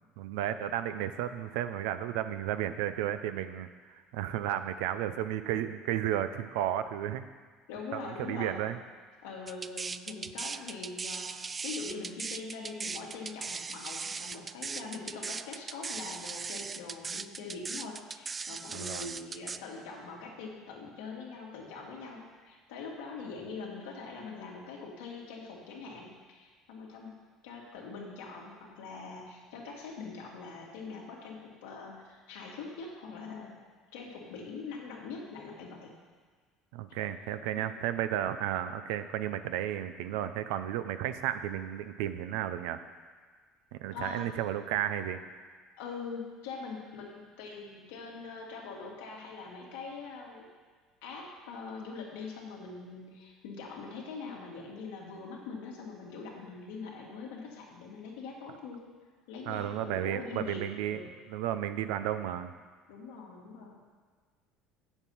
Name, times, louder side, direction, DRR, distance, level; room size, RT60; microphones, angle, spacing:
voice 1, 0.2-7.2 8.0-8.8 18.7-19.1 36.7-42.8 43.7-45.2 59.5-61.0 61.3-62.5, right 11 dB, 80° right, 11 dB, 0.5 m, -33 dB
voice 2, 7.7-8.6 9.2-27.2 27.4-33.6 33.9-36.0 37.6-37.8 43.9-44.2 45.8-50.5 51.0-58.8 59.3-61.1 62.9-63.8, left 4 dB, 85° left, -2 dB, 1.9 m, -43 dB
sound 1, 9.5-19.6, right 5 dB, 30° right, 0.3 m, -38 dB
8.3 x 7.1 x 5.5 m, 1.5 s
supercardioid pair, 85°, 0 cm